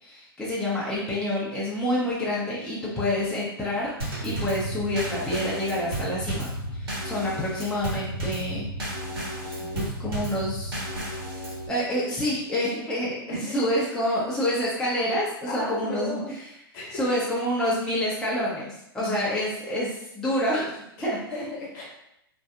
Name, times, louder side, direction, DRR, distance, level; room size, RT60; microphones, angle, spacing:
voice 1, 0.0-3.9 4.2-8.7 9.7-10.8 11.7-16.5 16.9-21.5, left 1 dB, 5° left, -7 dB, 0.6 m, -28 dB
Drum kit / Snare drum / Bass drum, 4.0-11.7, right 1 dB, 75° right, 1.4 m, -33 dB
voice 2, 7.1-7.4 9.4-10.3 13.3-13.8 15.5-16.3 16.7-17.1 19.0-19.3 21.0-21.1 21.3-21.8, left 1 dB, 50° left, -4 dB, 1.1 m, -36 dB
2.7 x 2.3 x 2.4 m, 0.81 s
hypercardioid pair, 110°, 12 cm